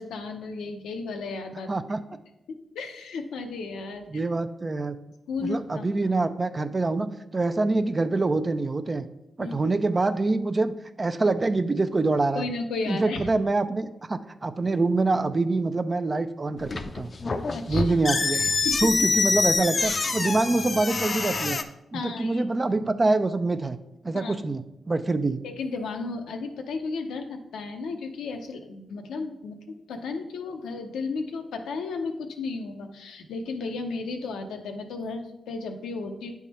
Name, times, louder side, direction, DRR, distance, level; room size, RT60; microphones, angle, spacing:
voice 1, 0.0-1.7 2.5-4.2 5.3-5.9 9.4-9.5 12.3-13.3 17.5-18.0 18.3-18.9 21.9-22.4 24.1-24.3 25.4-36.3, left 4 dB, 90° left, 5 dB, 0.7 m, -34 dB
voice 2, 1.7-2.0 4.1-5.0 5.4-9.1 9.4-10.7 11.0-12.5 12.9-17.1 17.7-18.4 18.8-21.6 21.9-23.8 24.0-25.4, right 3 dB, 40° right, 10 dB, 0.5 m, -25 dB
sound 1, 16.6-21.6, left 4 dB, 50° left, 0.5 m, -26 dB
9.0 x 3.6 x 4.2 m, 0.90 s
supercardioid pair, 45°, 0 cm